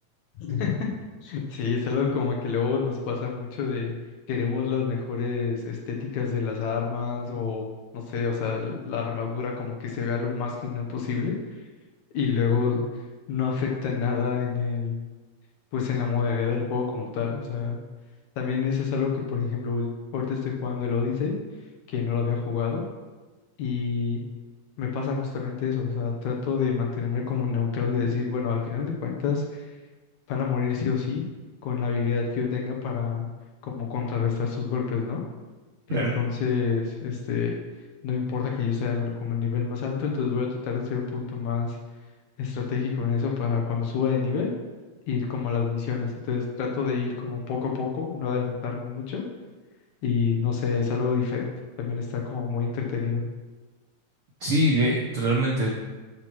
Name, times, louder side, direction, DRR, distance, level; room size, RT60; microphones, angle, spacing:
voice 1, 0.4-0.9 1.2-3.9 4.3-7.6 7.9-11.4 12.1-12.8 13.3-14.9 15.7-17.8 18.4-21.4 21.9-22.9 23.6-24.2 24.8-29.7 30.3-31.2 31.6-33.3 33.6-35.2 35.9-37.6 38.0-41.8 42.4-44.5 45.1-49.2 50.0-51.5 51.8-53.2, left 6 dB, 70° left, 0 dB, 2.1 m, -27 dB
voice 2, 54.4-55.7, right 1 dB, 75° right, -3 dB, 1.3 m, -23 dB
13.0 x 6.1 x 3.0 m, 1.3 s
omnidirectional pair, 3.8 m